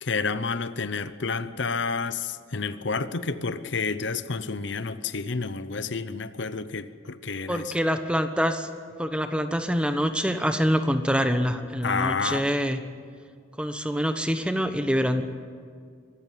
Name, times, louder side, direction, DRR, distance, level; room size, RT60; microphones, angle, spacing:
voice 1, 0.0-7.7 11.8-12.4, left 4 dB, 70° left, 13 dB, 0.8 m, -30 dB
voice 2, 7.5-8.7 9.0-12.8 13.6-15.2, equal, 5° right, 8 dB, 1.1 m, -25 dB
24.0 x 14.0 x 9.1 m, 2.1 s
head